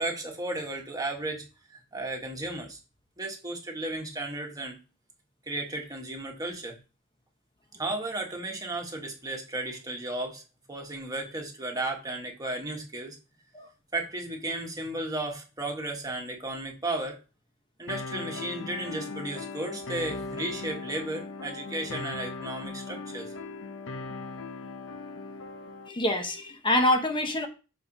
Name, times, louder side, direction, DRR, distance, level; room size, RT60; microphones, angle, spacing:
voice 1, 0.0-2.8 3.2-4.8 5.5-6.7 7.8-10.4 10.7-13.2 13.9-17.2 17.8-23.3, right 2 dB, 15° right, 1 dB, 1.5 m, -34 dB
sound 1, 17.9-25.9, left 3 dB, 60° left, 0.8 m, -38 dB
voice 2, 25.9-27.5, left 1 dB, 20° left, 5 dB, 0.9 m, -25 dB
5.1 x 4.7 x 5.9 m, 0.32 s
head